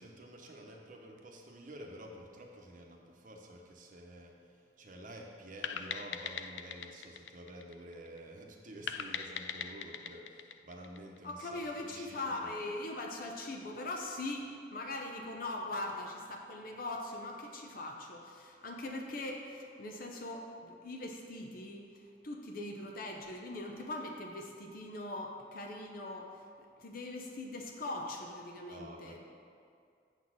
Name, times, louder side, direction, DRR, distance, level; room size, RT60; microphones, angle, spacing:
voice 1, 0.0-12.6 28.7-29.2, right 1 dB, 50° right, 1 dB, 0.9 m, -50 dB
sound 1, 5.6-8.2 8.9-11.4, left 8 dB, 90° left, 0.4 m, -41 dB
voice 2, 11.2-29.2, left 2 dB, 55° left, 1 dB, 0.7 m, -41 dB
7.1 x 4.1 x 6.3 m, 2.3 s
head